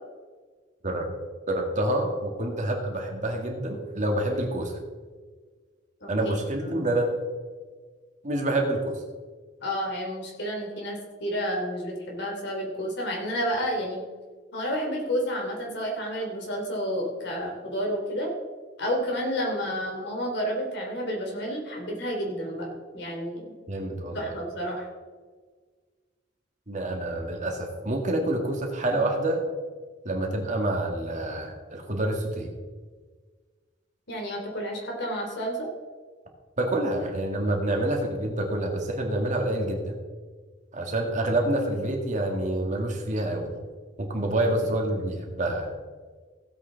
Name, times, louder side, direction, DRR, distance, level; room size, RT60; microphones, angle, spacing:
voice 1, 1.5-4.7 6.1-7.1 8.2-9.0 23.7-24.3 26.7-29.4 30.0-32.5 36.6-39.9 40.7-43.6 44.0-45.7, right 1 dB, 40° right, 2 dB, 2.0 m, -27 dB
voice 2, 6.0-6.3 6.6-6.9 9.6-14.0 14.5-18.3 18.8-23.5 24.1-24.9 34.1-35.7, equal, 65° left, -1 dB, 3.3 m, -30 dB
16.0 x 8.2 x 4.0 m, 1.5 s
head